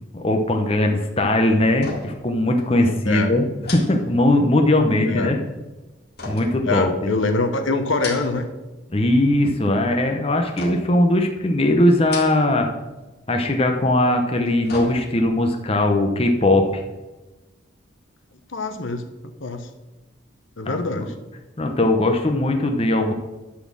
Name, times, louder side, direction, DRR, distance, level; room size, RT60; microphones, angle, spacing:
voice 1, 0.1-3.5 3.7-5.4 6.3-6.9 8.9-12.7 13.3-16.8 20.7-20.8 21.6-23.1, left 1 dB, 30° left, 4 dB, 0.8 m, -19 dB
sound 1, 1.7-2.3 2.6-2.7 3.6-4.7 6.2-7.3 7.8-8.6 8.9-9.5 10.6-11.1 11.9-12.7 13.0-13.1 14.2-15.4 15.8-15.9, left 3 dB, 50° left, 2.2 m, -36 dB
voice 2, 2.8-3.3 5.0-5.3 6.6-8.5 18.5-19.7 20.6-21.1, left 3 dB, 75° left, 7 dB, 1.0 m, -25 dB
11.5 x 4.3 x 7.4 m, 1.1 s
head